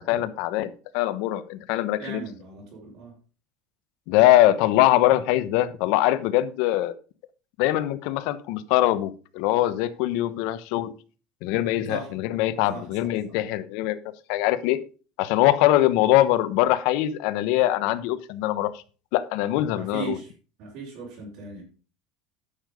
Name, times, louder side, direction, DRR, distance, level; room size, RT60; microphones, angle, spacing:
voice 1, 0.0-2.2 4.1-6.9 7.6-10.9 11.4-14.0 14.3-14.8 15.2-18.8 19.1-20.2, left 14 dB, 70° left, 13 dB, 1.0 m, -22 dB
voice 2, 2.0-3.2 11.9-12.1 12.7-13.1 19.7-20.3 20.6-21.6, right 5 dB, 65° right, -5 dB, 5.3 m, -38 dB
10.0 x 6.8 x 5.3 m, 0.37 s
supercardioid pair, 130°, 0 cm